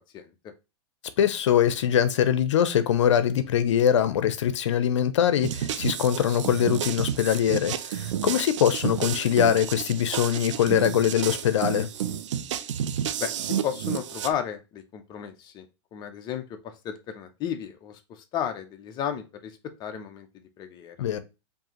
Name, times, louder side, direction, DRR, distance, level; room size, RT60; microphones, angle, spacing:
voice 1, 1.2-11.9 21.0-21.2, left 9 dB, 90° left, 0.6 m, -23 dB
sound 1, 5.4-14.3, right 9 dB, 90° right, 0.5 m, -31 dB
voice 2, 13.2-15.7 15.9-19.5 19.8-20.3 20.6-21.0, left 9 dB, 30° left, 0.6 m, -33 dB
4.6 x 2.7 x 2.9 m
supercardioid pair, 140°, 15 cm